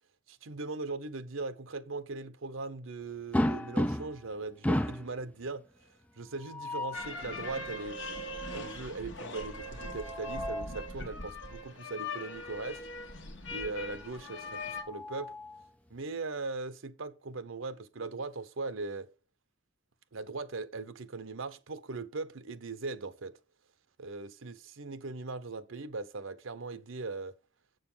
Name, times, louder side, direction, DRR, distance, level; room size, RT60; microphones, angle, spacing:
voice 1, 0.3-8.0 8.5-12.8 13.5-15.3 15.9-19.1 20.1-23.4 24.0-27.3, right 3 dB, 80° right, 0.8 m, -39 dB
sound 1, 3.3-4.3 4.6-5.1 6.3-7.1 9.8-10.8 12.2-12.4 12.8-12.9 14.4-15.6, left 1 dB, 5° left, 0.4 m, -33 dB
sound 2, 6.9-14.8, left 2 dB, 60° left, 1.7 m, -41 dB
7.7 x 6.7 x 5.5 m
head